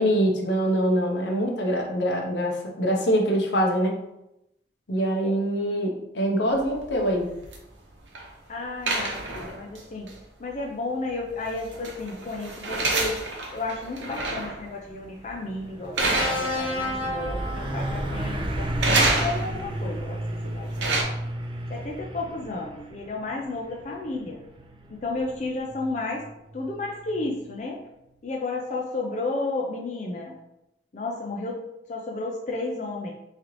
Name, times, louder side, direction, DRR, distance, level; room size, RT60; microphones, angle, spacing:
voice 1, 0.0-4.0 4.9-7.3, equal, 75° left, 2 dB, 0.7 m, -24 dB
sound 1, 6.5-8.3 8.9-9.8 10.1-10.2 11.4-14.6 15.0-15.3 16.0-16.9 17.2-17.8 18.8-19.7 20.5-21.0, right 2 dB, 90° right, 0.8 m, -28 dB
voice 2, 8.5-10.1 10.4-13.2 13.5-21.1 21.7-24.4 24.9-26.2 26.5-27.8 28.2-30.3 30.9-33.1, left 2 dB, 40° left, -1 dB, 0.4 m, -32 dB
Truck, 14.5-14.6 14.9-27.5, right 1 dB, 30° right, 0.4 m, -34 dB
sound 2, 16.0-18.3 19.6-19.8, left 2 dB, 10° left, 1.3 m, -31 dB
3.7 x 3.2 x 3.0 m, 0.87 s
head